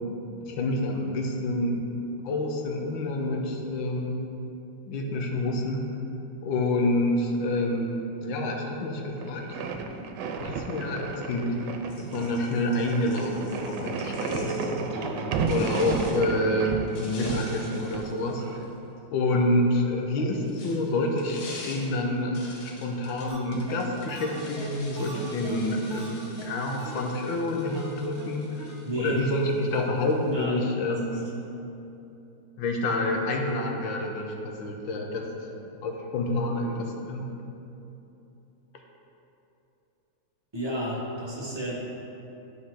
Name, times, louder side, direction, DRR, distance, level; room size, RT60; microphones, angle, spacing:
voice 1, 0.5-1.9 2.2-4.2 4.9-5.9 6.4-9.4 10.4-11.6 12.1-14.8 15.5-18.6 19.1-31.2 32.6-35.3 35.8-37.3, left 1 dB, 75° left, 2 dB, 1.5 m, -28 dB
sound 1, 9.2-18.6, right 4 dB, 90° right, 1.4 m, -33 dB
sound 2, 11.9-14.9 15.4-16.3 16.9-19.0 20.0-30.4, left 3 dB, 60° left, 1.4 m, -47 dB
voice 2, 14.9-15.3 28.8-29.2 30.3-30.5 30.9-31.0 40.5-41.7, right 1 dB, 15° right, -7 dB, 1.1 m, -32 dB
sound 3, 23.3-23.4 23.7-23.8 24.1-26.1 26.4-26.5 26.8-27.0 27.3-27.4 27.7-27.9 28.2-28.3 28.6-28.7 29.1-29.2 29.5-29.6, right 3 dB, 65° right, 1.8 m, -42 dB
11.5 x 4.2 x 3.7 m, 2.9 s
omnidirectional pair, 2.2 m